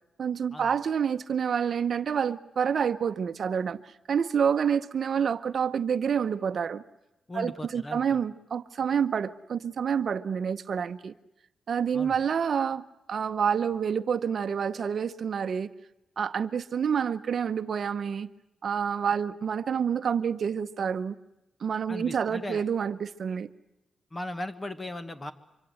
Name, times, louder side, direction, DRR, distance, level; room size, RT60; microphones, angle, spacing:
voice 1, 0.2-6.8 7.3-11.1 11.7-12.8 13.1-15.7 16.2-18.3 18.6-21.1 21.6-23.5, right 7 dB, 55° right, 0.9 m, -28 dB
voice 2, 7.3-8.2 11.9-12.2 21.9-22.6 24.1-25.3, left 1 dB, 25° left, 1.6 m, -37 dB
25.0 x 24.5 x 7.8 m
cardioid pair, 100°, 0 cm